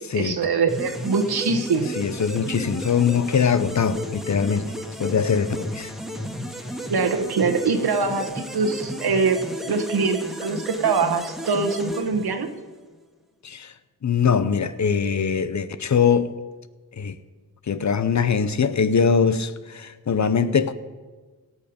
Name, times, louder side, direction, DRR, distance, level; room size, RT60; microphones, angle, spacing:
voice 1, 0.1-2.0 6.9-9.4 9.7-12.5, right 4 dB, 75° right, 1.3 m, -23 dB
sound 1, 0.7-12.8, equal, ahead, 1.7 m, -33 dB
voice 2, 1.9-4.7 5.0-5.9 13.4-13.7 14.0-16.3 17.0-17.1 17.7-20.7, left 6 dB, 45° left, 0.7 m, -22 dB
17.5 x 7.2 x 5.2 m
cardioid pair, 70°, 38 cm